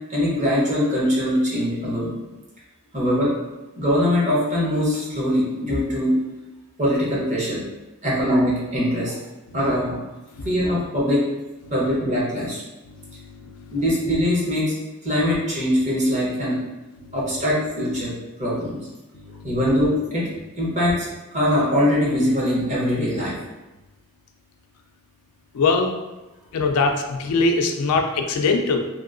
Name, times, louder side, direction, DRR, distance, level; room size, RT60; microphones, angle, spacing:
voice 1, 0.1-2.1 2.9-3.3 3.7-6.2 6.8-7.6 8.0-9.1 9.5-10.0 10.4-11.2 11.7-12.6 13.7-14.7 15.0-16.6 17.1-18.1 18.4-18.8 19.4-21.1 21.3-23.4, equal, 35° right, -6 dB, 0.9 m, -22 dB
voice 2, 13.1-13.7 25.5-25.9 26.5-28.8, left 3 dB, 85° left, 4 dB, 0.4 m, -22 dB
2.9 x 2.7 x 2.5 m, 1.1 s
head